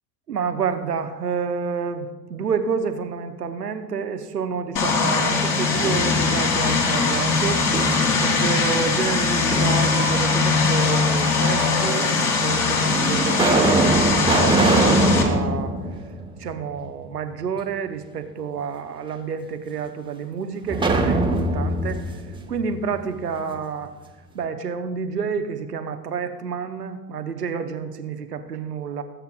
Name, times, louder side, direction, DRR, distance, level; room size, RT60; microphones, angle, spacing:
voice 1, 0.3-7.7 8.2-12.1 12.4-15.7 16.4-22.2 22.5-23.9 24.3-29.0, right 6 dB, 85° right, 8 dB, 0.8 m, -29 dB
Vehicle, 4.8-15.2, left 4 dB, 40° left, 2.1 m, -21 dB
sound 1, 5.6-6.5 7.0-8.3 9.5-10.3 11.2-11.3 12.2-12.3 12.9-17.0 17.3-17.4 20.7-23.5, right 2 dB, 10° right, 1.0 m, -23 dB
18.0 x 7.9 x 2.3 m, 1.2 s
figure-of-eight pair, 70°, 46 cm